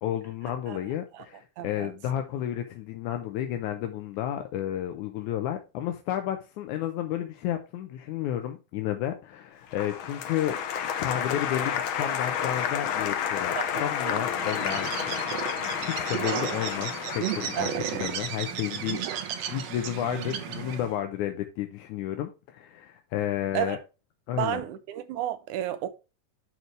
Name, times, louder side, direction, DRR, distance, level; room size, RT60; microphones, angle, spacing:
voice 1, 0.0-10.6 11.0-15.2 15.5-23.8 24.3-24.6, left 11 dB, 85° left, 2.2 m, -32 dB
voice 2, 1.6-1.9 13.6-14.2 17.6-17.7 19.1-19.2 23.5-23.8 24.3-25.9, right 12 dB, 85° right, 2.3 m, -32 dB
Applause, 9.7-18.8, left 8 dB, 65° left, 1.3 m, -31 dB
Bird, 14.3-20.9, right 8 dB, 65° right, 2.0 m, -34 dB
10.5 x 4.6 x 3.2 m
omnidirectional pair, 3.4 m